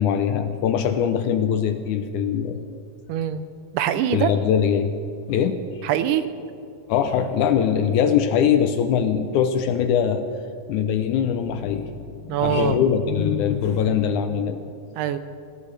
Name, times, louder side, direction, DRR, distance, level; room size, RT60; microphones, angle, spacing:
voice 1, 0.0-2.6 4.1-4.9 5.3-5.9 6.9-10.2 10.7-14.6, left 8 dB, 75° left, 8 dB, 1.9 m, -22 dB
voice 2, 3.1-3.4 3.7-4.3 5.8-6.3 12.3-12.8 15.0-15.2, right 11 dB, 80° right, 11 dB, 2.1 m, -23 dB
20.0 x 18.0 x 3.3 m, 2.5 s
omnidirectional pair, 3.9 m